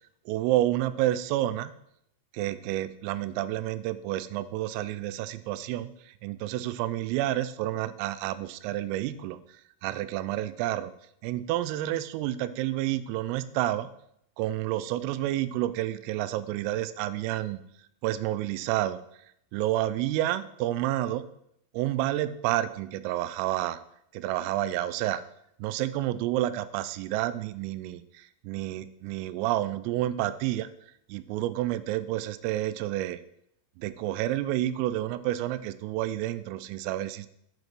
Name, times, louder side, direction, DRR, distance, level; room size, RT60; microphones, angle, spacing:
voice 1, 0.3-1.7 2.3-10.9 11.2-13.9 14.4-17.6 18.0-19.0 19.5-21.3 21.7-23.8 24.1-25.2 25.6-30.7 31.1-33.2 33.8-37.3, right 14 dB, 90° right, 13 dB, 3.2 m, -29 dB
8.2 x 5.3 x 6.0 m, 0.73 s
omnidirectional pair, 5.8 m